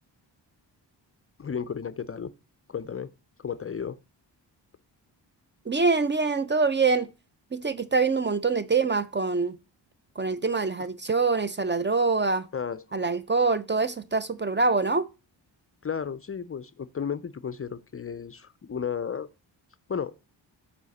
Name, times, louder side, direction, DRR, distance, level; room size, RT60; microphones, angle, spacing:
voice 1, 1.4-2.3 2.7-3.1 3.4-4.0 10.2-10.3 12.5-13.0 15.8-19.3 19.9-20.1, left 7 dB, 30° left, 0.4 m, -33 dB
voice 2, 5.7-7.1 7.5-9.6 10.2-12.5 12.9-15.1, right 4 dB, 25° right, 0.5 m, -25 dB
7.3 x 5.0 x 4.0 m
cardioid pair, 80°, 45 cm